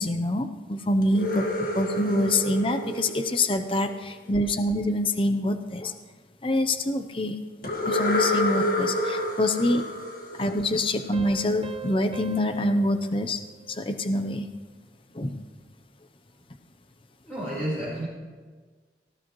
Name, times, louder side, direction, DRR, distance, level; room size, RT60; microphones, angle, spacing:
voice 1, 0.0-5.9 6.4-7.4 7.9-9.9 10.4-13.4 13.7-14.5 15.1-15.4, left 1 dB, 30° left, 7 dB, 0.7 m, -26 dB
sound 1, 1.0-4.0 7.6-11.4, left 1 dB, 50° left, 1.9 m, -29 dB
Piano, 11.1-14.4, right 5 dB, 30° right, 0.9 m, -42 dB
voice 2, 17.2-18.1, right 1 dB, 10° left, -11 dB, 5.1 m, -30 dB
19.0 x 15.0 x 3.1 m, 1.4 s
head